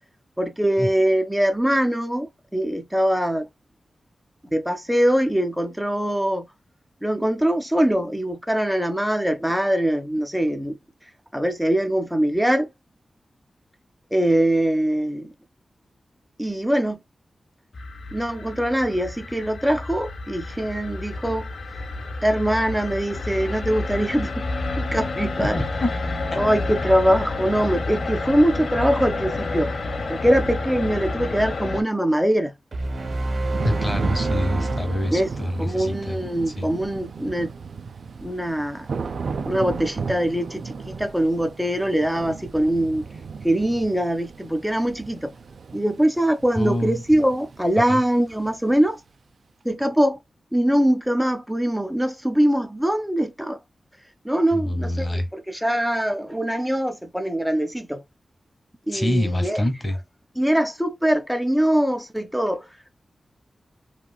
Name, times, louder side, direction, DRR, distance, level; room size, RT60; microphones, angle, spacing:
voice 1, 0.4-3.5 4.5-6.5 7.0-10.8 11.3-12.7 14.1-15.3 16.4-17.0 18.1-21.8 22.2-24.5 24.8-25.6 26.3-29.7 30.1-32.5 35.1-35.3 35.6-37.5 38.2-38.9 39.5-43.1 43.4-45.3 45.7-49.0 49.6-50.2 50.5-53.6 54.2-58.0 58.9-59.6 60.4-62.7, right 1 dB, ahead, 0.5 m, -22 dB
sound 1, 17.7-31.8, left 3 dB, 70° left, 0.8 m, -29 dB
voice 2, 25.4-26.0 26.3-26.4 33.6-36.2 36.5-36.7 46.5-47.0 47.9-48.0 54.5-55.3 58.9-60.0, left 1 dB, 25° left, 0.9 m, -26 dB
sound 2, 32.7-36.0, right 2 dB, 55° right, 0.8 m, -28 dB
Thunder / Rain, 33.1-48.9, right 5 dB, 70° right, 0.4 m, -34 dB
3.1 x 3.0 x 2.2 m
wide cardioid pair, 150°, 0 cm